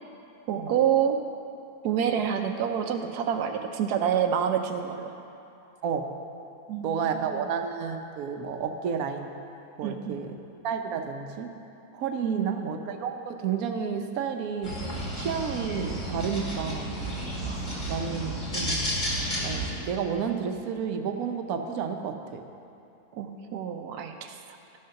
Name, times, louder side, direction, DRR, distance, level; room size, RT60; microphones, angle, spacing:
voice 1, 0.5-1.2 1.8-5.1 6.7-7.0 7.4-7.5 9.8-10.2 12.2-12.7 17.4-17.8 23.1-24.4, right 8 dB, 90° right, 5 dB, 1.2 m, -28 dB
voice 2, 6.8-9.3 9.8-10.4 10.6-11.5 11.9-14.7 15.1-16.9 17.9-18.9 19.4-22.4, right 6 dB, 70° right, 5 dB, 1.2 m, -31 dB
sound 1, 14.6-19.7, equal, 30° left, 2.1 m, -32 dB
13.0 x 6.5 x 5.8 m, 2.8 s
omnidirectional pair, 1.6 m